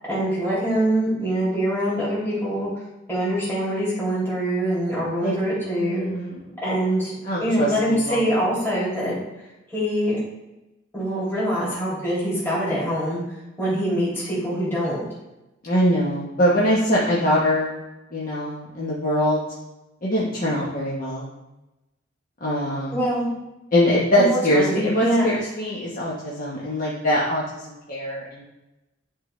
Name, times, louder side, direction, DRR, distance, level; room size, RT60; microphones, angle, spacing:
voice 1, 0.1-2.7 3.1-6.0 6.6-7.1 7.4-9.1 9.7-10.2 10.9-13.2 13.6-15.0 22.9-23.3 24.2-25.3, equal, 10° left, -9 dB, 2.6 m, -24 dB
voice 2, 5.8-6.4 7.2-8.3 15.6-17.8 18.1-19.4 20.0-21.3 22.4-23.0 23.7-28.4, equal, 45° left, -6 dB, 1.2 m, -23 dB
11.0 x 3.8 x 3.3 m, 1.0 s
head